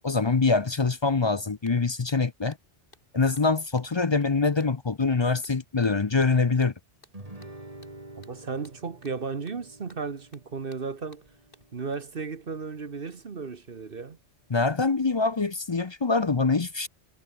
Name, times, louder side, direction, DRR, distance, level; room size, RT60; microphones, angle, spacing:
voice 1, 0.0-2.6 3.1-6.7 14.5-16.9, left 4 dB, 30° left, 0.6 m, -24 dB
sound 1, 1.6-11.9, left 2 dB, 50° left, 5.1 m, -61 dB
Guitar, 7.1-12.2, right 1 dB, 30° right, 3.5 m, -48 dB
voice 2, 8.2-11.2 11.7-14.2, right 5 dB, 50° right, 1.4 m, -35 dB
omnidirectional pair, 1.2 m